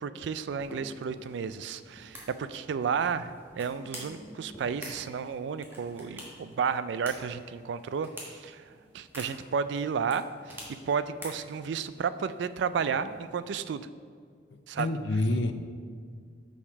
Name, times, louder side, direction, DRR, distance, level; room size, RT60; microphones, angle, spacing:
voice 1, 0.0-8.6 8.9-10.6 10.9-13.9 14.7-14.9, right 6 dB, 70° right, 13 dB, 0.3 m, -32 dB
sound 1, 0.6-13.4, equal, 10° right, 1.2 m, -48 dB
voice 2, 14.5-15.5, left 2 dB, 75° left, 8 dB, 0.5 m, -28 dB
6.4 x 5.9 x 4.7 m, 2.1 s
head